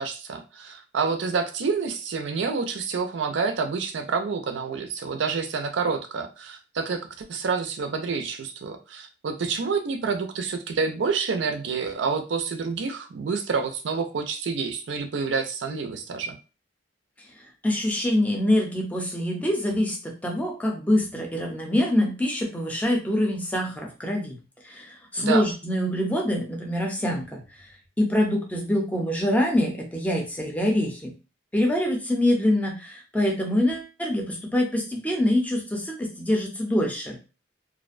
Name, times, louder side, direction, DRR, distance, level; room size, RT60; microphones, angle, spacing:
voice 1, 0.0-16.4 25.2-25.5, right 5 dB, 80° right, 6 dB, 0.4 m, -28 dB
voice 2, 17.6-24.4 24.6-27.4 28.0-31.1 31.5-37.2, left 1 dB, 10° left, 1 dB, 0.5 m, -25 dB
2.4 x 2.1 x 2.4 m, 0.32 s
head